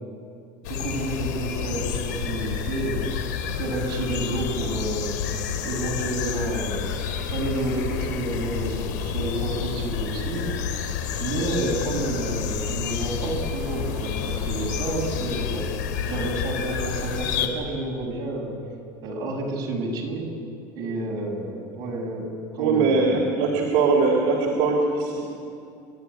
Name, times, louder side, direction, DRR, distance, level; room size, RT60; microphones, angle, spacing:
sound 1, 0.6-17.5, left 7 dB, 90° left, 2.6 m, -29 dB
voice 1, 0.6-3.3 3.6-5.1 5.6-6.9 7.2-10.5 11.2-15.7 16.1-18.5 19.0-20.3 20.7-22.3 22.5-23.3, right 2 dB, 45° right, -1 dB, 7.1 m, -30 dB
voice 2, 22.6-25.2, right 4 dB, 65° right, -1 dB, 3.6 m, -21 dB
30.0 x 13.0 x 9.9 m, 2.5 s
supercardioid pair, 125°, 9 cm